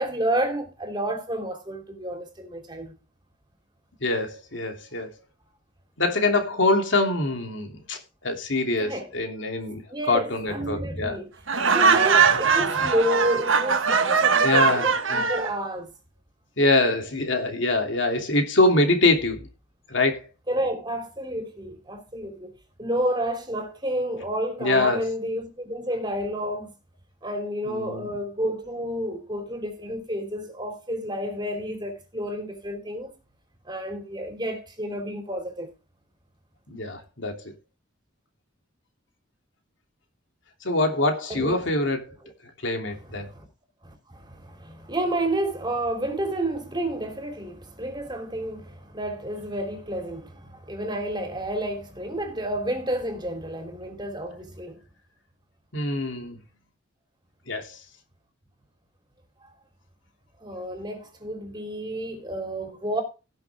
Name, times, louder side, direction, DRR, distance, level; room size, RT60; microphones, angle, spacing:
voice 1, 0.0-2.9 8.8-9.1 9.9-11.3 11.6-15.9 20.5-26.7 27.2-33.1 33.6-35.7 41.3-41.6 43.0-43.5 43.8-54.8 60.4-63.0, right 1 dB, 20° right, 2.9 m, -30 dB
voice 2, 4.0-5.2 6.0-9.8 10.1-11.2 14.4-15.3 16.6-19.5 19.9-20.3 24.6-25.1 27.7-28.1 36.7-37.5 40.6-42.1 42.6-43.3 55.7-56.4 57.5-57.8, left 2 dB, 65° left, 2.8 m, -24 dB
Laughter, 11.5-15.5, right 6 dB, 80° right, 1.5 m, -21 dB
18.0 x 6.5 x 3.5 m
head